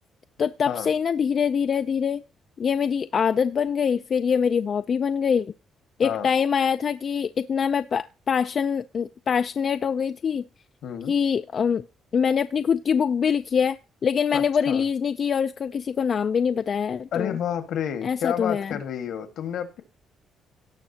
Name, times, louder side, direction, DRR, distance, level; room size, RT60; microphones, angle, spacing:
voice 1, 0.4-2.2 2.6-5.5 6.0-10.4 11.1-11.8 12.1-17.4 18.0-18.8, left 7 dB, 50° left, 0.5 m, -24 dB
voice 2, 10.8-11.1 14.3-14.8 17.1-19.8, left 9 dB, 75° left, 1.8 m, -30 dB
18.0 x 6.1 x 2.9 m
cardioid pair, 90°, 0 cm